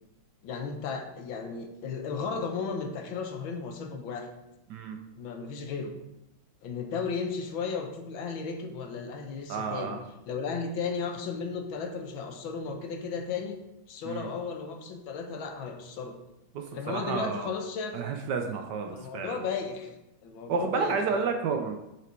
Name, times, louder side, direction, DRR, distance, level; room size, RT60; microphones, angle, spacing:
voice 1, 0.4-4.3 5.2-5.9 6.6-10.0 10.3-13.6 13.9-16.2 16.7-17.9 18.9-19.9 20.2-21.3, left 5 dB, 75° left, 5 dB, 1.6 m, -34 dB
voice 2, 9.5-10.0 14.0-14.3 16.5-17.5 17.9-19.4 20.5-21.8, right 5 dB, 70° right, 4 dB, 1.2 m, -31 dB
6.5 x 5.0 x 4.4 m, 0.90 s
omnidirectional pair, 2.2 m